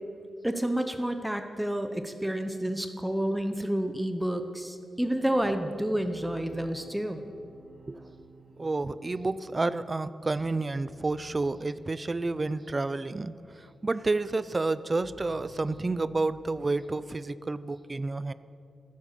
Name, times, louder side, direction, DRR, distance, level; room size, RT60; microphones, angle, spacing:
voice 1, 0.4-7.2, right 1 dB, 5° right, 7 dB, 0.8 m, -29 dB
sound 1, 2.9-16.2, right 1 dB, 50° right, 2.7 m, -54 dB
voice 2, 8.6-13.3 13.8-18.3, right 3 dB, 25° right, 15 dB, 0.5 m, -30 dB
15.0 x 14.0 x 6.7 m, 2.4 s
wide cardioid pair, 140°, 0 cm